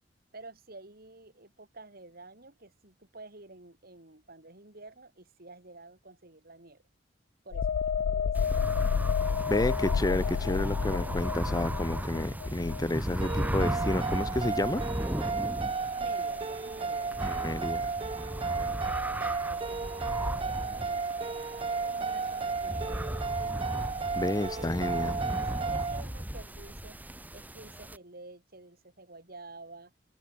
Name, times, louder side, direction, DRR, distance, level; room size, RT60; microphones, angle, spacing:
voice 1, 0.3-6.8 7.4-8.8 15.9-17.7 18.5-21.4 21.8-23.2 24.5-24.7 25.0-25.3 25.6-27.0 27.3-29.9, right 2 dB, 55° right, 4.1 m, -50 dB
sound 1, 7.5-15.0 15.3-15.5, left 6 dB, 65° left, 0.3 m, -31 dB
sound 2, 8.3-28.0, equal, 10° right, 1.4 m, -36 dB
voice 2, 9.5-14.8 17.2-17.9 24.1-25.2, left 1 dB, 20° left, 0.8 m, -30 dB
sound 3, 13.2-26.0, right 4 dB, 30° right, 0.5 m, -33 dB
head